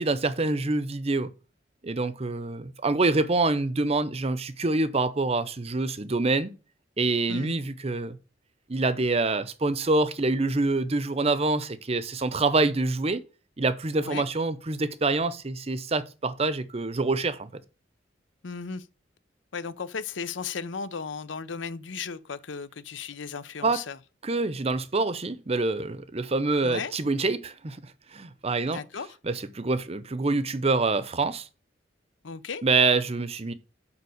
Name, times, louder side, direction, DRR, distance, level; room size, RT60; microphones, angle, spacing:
voice 1, 0.0-1.3 1.8-6.5 7.0-8.2 8.7-13.2 13.6-17.5 23.6-23.8 24.2-28.8 29.2-31.5 32.6-33.5, right 3 dB, 35° right, 0.7 m, -26 dB
voice 2, 18.4-18.9 19.5-24.0 26.6-26.9 28.7-29.1 32.2-32.6, left 5 dB, 85° left, 0.7 m, -35 dB
7.0 x 5.3 x 6.4 m
head